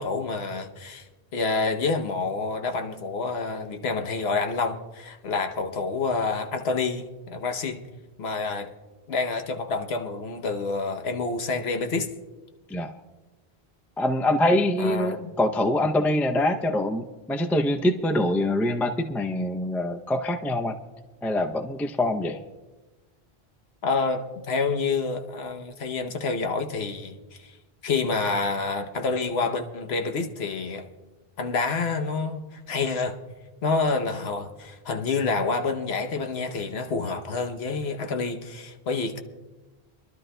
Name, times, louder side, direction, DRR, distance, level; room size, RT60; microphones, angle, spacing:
voice 1, 0.0-7.8 8.2-8.7 9.1-12.1 14.8-15.3 23.8-27.5 27.8-30.9 31.4-33.2 33.6-39.2, left 4 dB, 75° left, 1.1 m, -28 dB
voice 2, 14.0-20.8 21.2-22.4, left 1 dB, 5° left, 0.3 m, -24 dB
26.0 x 12.0 x 2.2 m
omnidirectional pair, 1.1 m